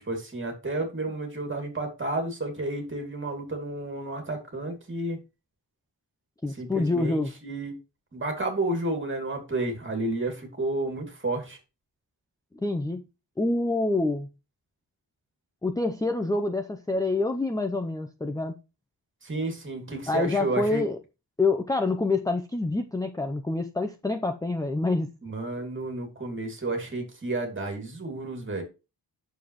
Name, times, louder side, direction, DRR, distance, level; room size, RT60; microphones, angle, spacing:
voice 1, 0.0-5.2 6.6-7.8 8.1-11.6 19.2-20.8 25.2-28.6, right 2 dB, 30° right, 2.6 m, -31 dB
voice 2, 6.4-7.3 12.6-13.0 13.4-14.3 15.6-18.5 20.1-21.0 21.4-25.1, left 2 dB, 10° left, 0.6 m, -26 dB
9.2 x 6.9 x 3.1 m
wide cardioid pair, 140°, 42 cm